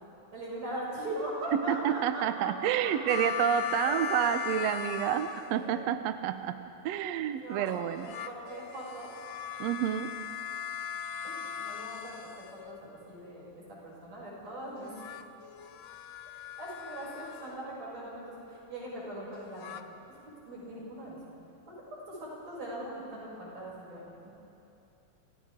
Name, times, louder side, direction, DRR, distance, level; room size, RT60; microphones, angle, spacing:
voice 1, 0.3-2.5 3.9-4.2 4.5-4.6 7.4-7.7 8.0-9.1 11.2-14.9 16.6-19.8 20.4-21.2 22.1-22.2 22.5-24.3, right 1 dB, 55° right, -6 dB, 8.2 m, -40 dB
voice 2, 1.5-8.1 9.6-10.2, right 10 dB, 75° right, 9 dB, 1.5 m, -29 dB
sound 1, 3.1-5.9 7.7-12.9 14.8-17.6 19.3-19.8, left 8 dB, 70° left, 1.6 m, -39 dB
29.5 x 27.5 x 3.7 m, 2.8 s
omnidirectional pair, 3.7 m